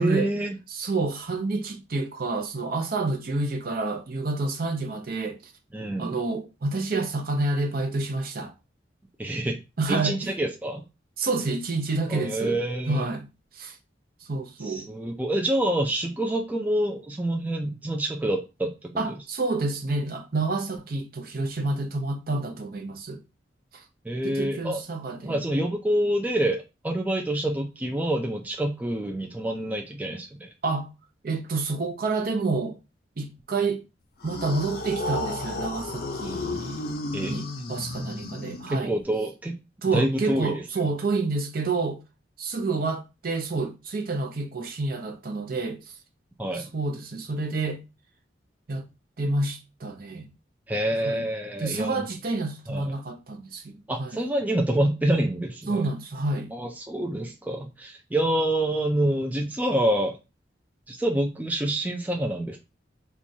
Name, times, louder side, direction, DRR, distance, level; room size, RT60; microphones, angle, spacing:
voice 1, 0.0-0.5 5.7-6.2 9.2-9.6 9.9-10.8 12.1-13.1 14.6-19.0 24.0-24.8 25.2-30.5 37.1-37.4 38.7-39.6 39.9-40.6 46.4-46.7 50.7-52.1 52.7-52.9 53.9-55.9 56.5-60.2 60.9-62.6, right 1 dB, 10° right, 0.4 m, -27 dB
voice 2, 0.7-5.5 6.0-8.5 9.8-10.3 11.2-12.6 12.9-13.8 14.3-14.9 19.0-23.2 23.7-23.8 24.2-25.4 30.6-30.9 31.2-32.8 33.2-33.8 34.2-36.9 37.3-39.0 39.8-42.0 42.4-46.0 46.5-47.8 48.7-48.9 49.2-50.3 50.9-51.3 51.6-54.2 55.7-56.5, right 3 dB, 50° right, 0.6 m, -29 dB
sound 1, 34.2-39.0, left 2 dB, 55° left, 0.5 m, -33 dB
4.2 x 2.3 x 2.7 m
head